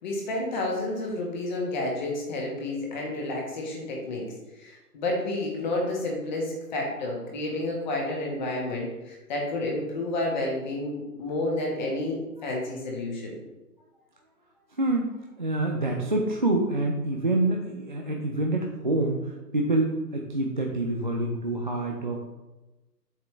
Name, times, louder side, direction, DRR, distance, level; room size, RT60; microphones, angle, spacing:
voice 1, 0.0-4.3 4.6-13.4, left 2 dB, 30° left, -1 dB, 1.6 m, -30 dB
voice 2, 14.8-22.3, right 2 dB, 30° right, 0 dB, 0.4 m, -27 dB
7.4 x 5.7 x 3.3 m, 1.1 s
figure-of-eight pair, 140°, 48 cm